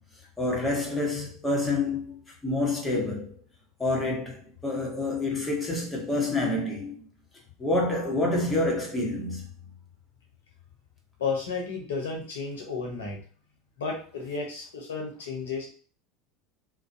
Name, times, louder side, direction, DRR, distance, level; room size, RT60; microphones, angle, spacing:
voice 1, 0.4-3.4 3.8-7.1 7.6-9.7, left 2 dB, 15° left, 1.1 m, -28 dB
voice 2, 11.2-13.2 13.8-15.7, left 4 dB, 80° left, 0.8 m, -32 dB
2.4 x 2.2 x 2.7 m
hypercardioid pair, 80°, 0 cm